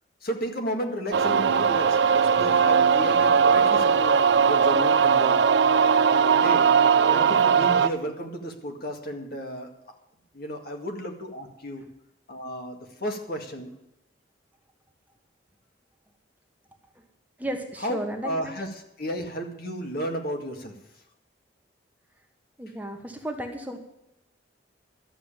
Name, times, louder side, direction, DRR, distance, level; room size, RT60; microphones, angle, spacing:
voice 1, 0.2-5.4 6.4-6.6 7.1-9.7 10.3-11.8 12.3-13.7 17.8-18.7 19.0-20.7, equal, 55° left, 3 dB, 2.0 m, -33 dB
sound 1, 1.1-7.9, right 6 dB, 65° right, 0.5 m, -19 dB
voice 2, 17.4-18.5 22.6-23.8, right 1 dB, 10° right, 3 dB, 1.3 m, -33 dB
12.5 x 7.1 x 9.0 m, 0.84 s
head